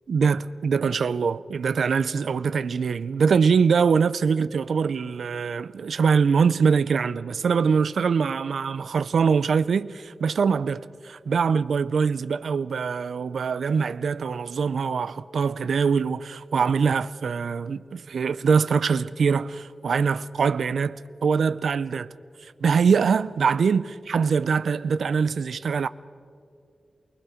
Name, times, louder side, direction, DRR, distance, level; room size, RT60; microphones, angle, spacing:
voice 1, 0.1-22.1 22.6-25.9, right 5 dB, 80° right, 0.5 m, -23 dB
29.0 x 20.5 x 5.0 m
wide cardioid pair, 180°, 0 cm